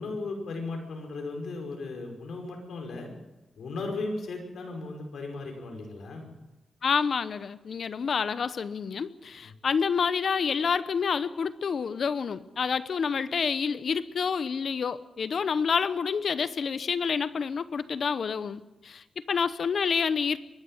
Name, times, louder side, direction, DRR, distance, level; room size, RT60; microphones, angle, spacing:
voice 1, 0.0-3.1 3.6-6.3 9.4-9.5, left 3 dB, 75° left, 2 dB, 5.4 m, -36 dB
voice 2, 6.8-20.4, left 6 dB, 60° left, 15 dB, 0.9 m, -28 dB
23.0 x 11.5 x 10.0 m, 1.0 s
wide cardioid pair, 105°, 0 cm